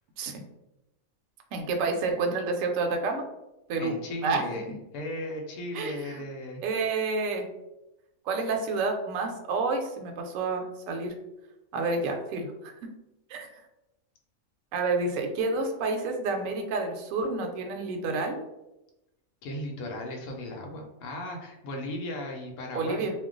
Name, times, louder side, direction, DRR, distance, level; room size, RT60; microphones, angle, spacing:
voice 1, 1.5-3.2 3.7-3.9 4.2-4.4 5.7-6.2 6.6-7.5 8.3-11.1 11.7-12.7 13.3-13.5 14.7-18.4 22.7-23.1, right 3 dB, 70° right, 4 dB, 0.9 m, -29 dB
voice 2, 3.8-4.7 4.9-6.6 19.4-23.1, left 1 dB, 80° left, 1 dB, 1.0 m, -36 dB
2.4 x 2.2 x 3.7 m, 0.95 s
omnidirectional pair, 1.5 m